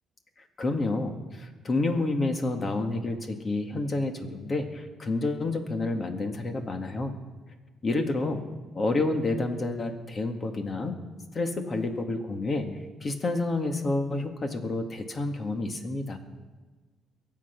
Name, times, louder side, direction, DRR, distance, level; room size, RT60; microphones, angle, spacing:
voice 1, 0.6-7.2 7.8-8.4 8.8-10.9 11.3-12.7 13.0-16.2, left 2 dB, 40° left, 5 dB, 2.0 m, -29 dB
22.5 x 7.6 x 6.0 m, 1.3 s
cardioid pair, 90°, 0 cm